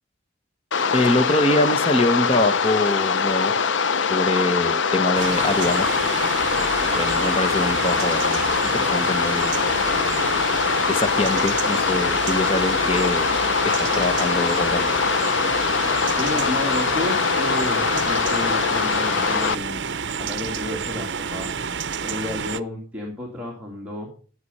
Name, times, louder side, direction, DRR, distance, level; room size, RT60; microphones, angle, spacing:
sound 1, 0.7-19.5, left 5 dB, 70° left, 0.6 m, -22 dB
voice 1, 0.9-3.5 4.1-6.0 6.9-9.7 10.9-13.3 13.6-15.0, left 2 dB, 30° left, 0.9 m, -24 dB
sound 2, 5.1-22.6, right 6 dB, 65° right, 0.7 m, -29 dB
voice 2, 16.1-19.8 20.2-21.5 22.0-24.1, left 1 dB, 5° right, 2.2 m, -31 dB
12.5 x 7.7 x 5.5 m
head